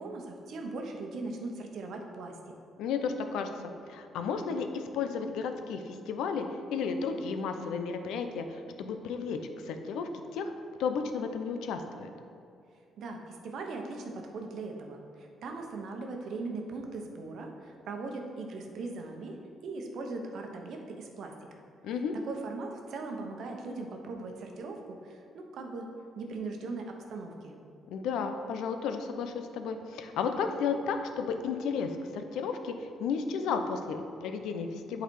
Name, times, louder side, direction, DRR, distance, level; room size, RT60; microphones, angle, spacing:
voice 1, 0.0-2.3 13.0-19.4 19.6-21.6 22.3-25.9 26.1-27.5, right 3 dB, 70° right, 2 dB, 0.9 m, -39 dB
voice 2, 2.8-3.5 3.9-10.5 10.8-12.1 21.8-22.2 27.9-35.0, left 5 dB, 90° left, 7 dB, 0.5 m, -33 dB
8.1 x 4.1 x 4.6 m, 2.6 s
cardioid pair, 90°, 0 cm